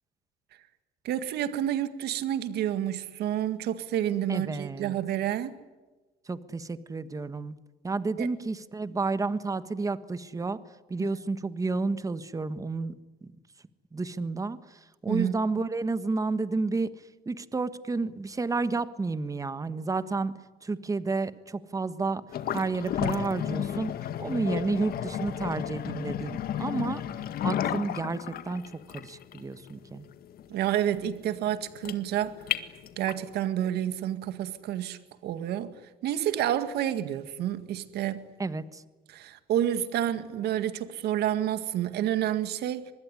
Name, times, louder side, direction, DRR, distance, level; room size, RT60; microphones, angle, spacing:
voice 1, 1.0-5.6 8.2-8.3 11.0-11.1 15.1-15.4 30.5-32.4 33.0-35.7 36.0-38.2 39.1-42.9, right 11 dB, 75° right, 2.0 m, -29 dB
voice 2, 4.3-4.9 6.3-7.5 7.8-10.6 10.9-12.9 13.2-13.3 13.9-16.9 17.2-20.3 20.6-22.2 22.5-23.9 24.2-27.0 27.4-28.6 28.9-30.0 38.4-38.8, right 3 dB, 20° right, 1.4 m, -31 dB
sound 1, 22.3-33.3, left 10 dB, 65° left, 1.9 m, -33 dB
25.0 x 21.0 x 9.8 m
cardioid pair, 110°, 17 cm